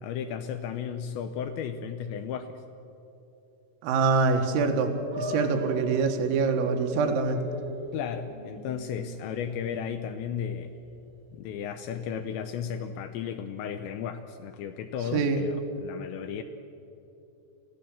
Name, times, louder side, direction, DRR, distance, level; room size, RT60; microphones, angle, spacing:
voice 1, 0.0-2.6 7.9-10.7 11.3-16.4, left 8 dB, 80° left, 8 dB, 2.7 m, -34 dB
voice 2, 3.8-7.4 15.1-15.4, right 4 dB, 85° right, 4 dB, 4.2 m, -25 dB
sound 1, 5.1-11.6, equal, 20° right, 2.8 m, -42 dB
24.5 x 16.0 x 7.2 m, 2.9 s
omnidirectional pair, 5.8 m